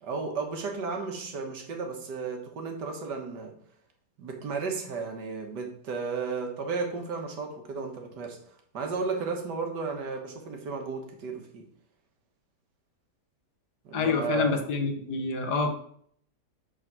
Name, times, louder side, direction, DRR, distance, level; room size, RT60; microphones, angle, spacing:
voice 1, 0.0-3.5 4.2-8.4 8.7-11.7 13.8-14.7, right 4 dB, 80° right, 3 dB, 1.9 m, -33 dB
voice 2, 13.9-15.7, left 4 dB, 75° left, 5 dB, 1.7 m, -27 dB
8.8 x 3.9 x 6.0 m, 0.64 s
omnidirectional pair, 1.8 m